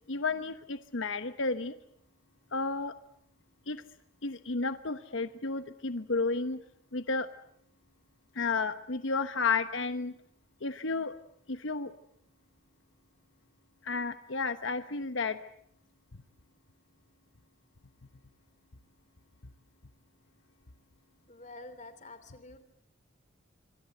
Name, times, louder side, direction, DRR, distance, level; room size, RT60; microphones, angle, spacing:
voice 1, 0.1-1.7 2.5-2.9 3.7-3.8 4.2-6.6 6.9-7.3 8.3-10.1 10.6-11.1 11.5-11.9 13.8-15.4, left 4 dB, 80° left, 10 dB, 1.1 m, -32 dB
voice 2, 21.3-22.6, left 2 dB, 35° left, 11 dB, 2.9 m, -48 dB
26.0 x 25.5 x 7.9 m, 0.69 s
head